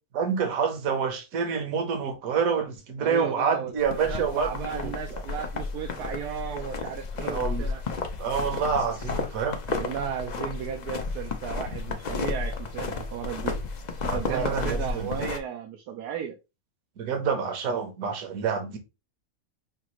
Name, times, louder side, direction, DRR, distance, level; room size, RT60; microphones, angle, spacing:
voice 1, 0.1-5.2 7.2-7.7 8.2-9.6 14.1-15.2 17.0-18.8, right 6 dB, 65° right, 1.4 m, -28 dB
voice 2, 3.0-7.8 9.7-13.6 14.0-16.4, right 8 dB, 85° right, 1.2 m, -35 dB
sound 1, 3.8-15.4, left 4 dB, 55° left, 0.4 m, -32 dB
5.9 x 2.4 x 3.0 m
omnidirectional pair, 1.6 m